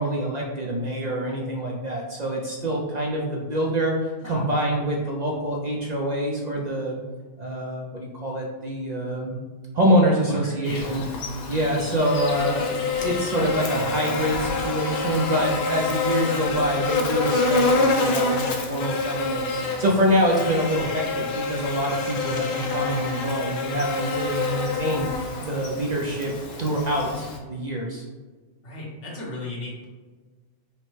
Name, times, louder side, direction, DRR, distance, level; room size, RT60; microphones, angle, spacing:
voice 1, 0.0-7.0 7.4-9.4 9.7-11.0 11.5-25.1 25.5-26.3 26.6-28.0, equal, 50° right, -2 dB, 0.5 m, -25 dB
voice 2, 10.2-11.0 28.6-29.9, left 1 dB, 80° left, -4 dB, 1.4 m, -35 dB
Buzz, 10.6-27.4, left 3 dB, 65° left, 0.8 m, -27 dB
5.8 x 2.1 x 3.1 m, 1.4 s
omnidirectional pair, 1.2 m